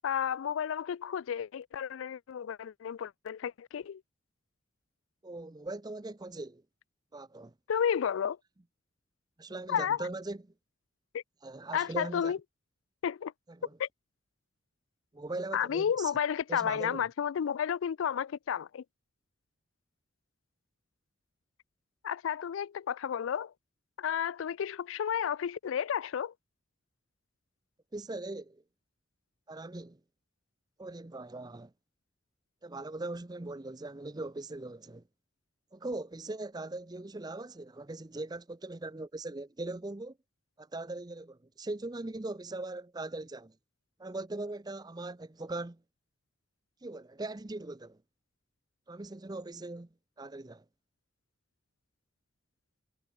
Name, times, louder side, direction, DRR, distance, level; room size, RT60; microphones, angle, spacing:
voice 1, 0.0-4.0 7.7-8.4 9.7-10.0 11.1-11.2 11.7-12.4 13.0-13.3 13.8-13.9 15.5-18.8 22.0-23.5 24.0-26.3, left 8 dB, 80° left, 0.4 m, -32 dB
voice 2, 5.2-6.6 7.1-7.5 9.4-10.5 11.4-12.3 13.6-13.7 15.1-16.1 16.5-17.0 27.9-28.6 29.5-30.0 30.8-31.7 32.6-35.0 35.7-40.2 40.6-43.5 44.0-45.8 46.8-48.0 48.9-49.9 50.2-50.6, right 2 dB, 20° right, 0.6 m, -40 dB
head